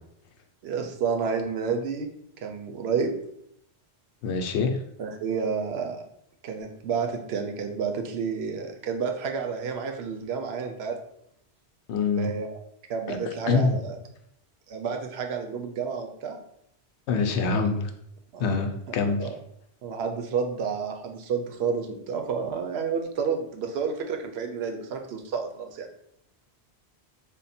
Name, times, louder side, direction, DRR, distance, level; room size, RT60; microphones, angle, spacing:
voice 1, 0.6-2.1 2.4-3.2 5.0-6.0 6.4-11.0 12.2-12.5 12.9-14.0 14.7-16.4 18.3-18.4 19.2-19.3 19.8-25.9, right 5 dB, 75° right, 4 dB, 0.8 m, -30 dB
voice 2, 4.2-4.8 11.9-12.3 13.1-13.2 13.5-13.8 17.1-17.9 18.4-19.3, left 4 dB, 85° left, 5 dB, 0.9 m, -25 dB
3.4 x 2.1 x 4.1 m, 0.75 s
omnidirectional pair, 1.1 m